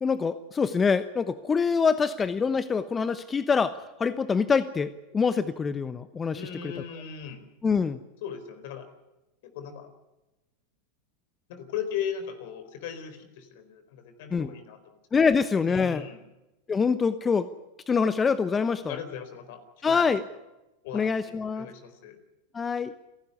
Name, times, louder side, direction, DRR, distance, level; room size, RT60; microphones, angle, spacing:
voice 1, 0.0-3.7 4.0-6.5 7.6-8.0 14.3-14.5 15.1-16.0 16.7-17.5 17.9-18.9 19.8-20.2 20.9-21.7 22.5-22.9, left 5 dB, 20° left, 13 dB, 1.0 m, -25 dB
voice 2, 6.3-7.4 8.2-8.9 9.4-9.9 11.5-14.9 15.7-16.2 18.8-20.1 20.8-22.2, left 8 dB, 65° left, 9 dB, 4.2 m, -38 dB
29.5 x 12.0 x 9.7 m, 1.0 s
hypercardioid pair, 95°, 0 cm